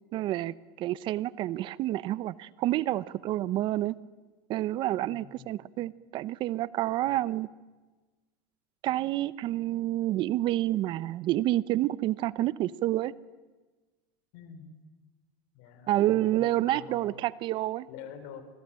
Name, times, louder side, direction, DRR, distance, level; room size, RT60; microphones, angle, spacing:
voice 1, 0.1-3.9 4.5-7.5 8.8-13.1 15.9-17.9, right 15 dB, 45° right, 18 dB, 0.8 m, -29 dB
voice 2, 5.1-5.5 7.0-7.2 14.3-14.7 15.5-17.2 17.9-18.4, left 8 dB, 65° left, 10 dB, 4.2 m, -46 dB
26.5 x 20.0 x 8.9 m, 1.2 s
supercardioid pair, 125°, 11 cm